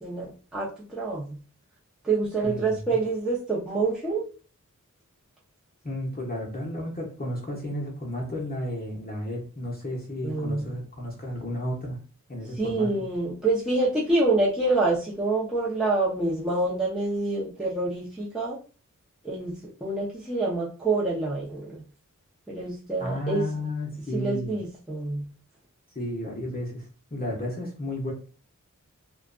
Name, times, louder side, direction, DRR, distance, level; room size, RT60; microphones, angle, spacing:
voice 1, 0.0-1.4 2.0-4.2 10.2-10.7 12.6-18.6 19.2-19.5 19.8-21.8 22.5-23.5 24.1-25.2, right 2 dB, ahead, -7 dB, 0.7 m, -27 dB
voice 2, 2.4-3.0 5.8-12.0 12.3-12.9 23.0-24.5 25.9-28.1, left 1 dB, 30° left, -4 dB, 0.9 m, -33 dB
2.5 x 2.2 x 2.5 m, 0.37 s
wide cardioid pair, 45°, 31 cm